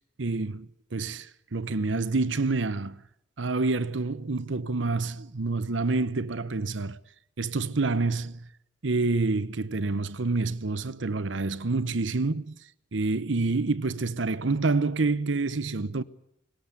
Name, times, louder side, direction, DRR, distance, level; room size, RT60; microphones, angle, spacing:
voice 1, 0.2-3.0 3.4-7.0 7.4-8.4 8.8-12.5 12.9-16.0, right 3 dB, 85° right, 0.9 m, -27 dB
20.0 x 18.0 x 8.2 m
head